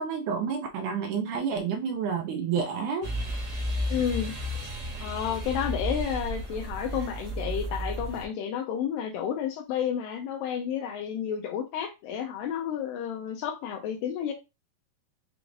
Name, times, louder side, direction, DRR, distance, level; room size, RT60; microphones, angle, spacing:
voice 1, 0.0-3.1, right 6 dB, 80° right, 5 dB, 1.8 m, -29 dB
sound 1, 3.0-8.2, equal, 65° right, 0.9 m, -33 dB
voice 2, 3.9-4.3 5.0-14.3, left 8 dB, 85° left, 3 dB, 2.3 m, -31 dB
6.0 x 3.2 x 2.5 m, 0.25 s
omnidirectional pair, 4.0 m